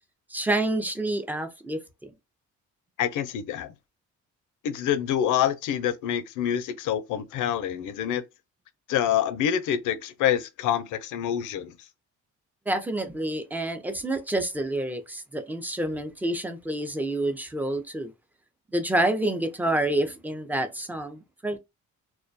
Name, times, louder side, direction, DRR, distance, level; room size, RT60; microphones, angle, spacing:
voice 1, 0.3-2.1 12.7-18.1 18.7-21.6, right 1 dB, 5° right, 0.4 m, -28 dB
voice 2, 3.0-3.7 4.6-8.2 8.9-11.8, left 10 dB, 85° left, 0.5 m, -26 dB
2.2 x 2.2 x 2.5 m
cardioid pair, 90°, 30 cm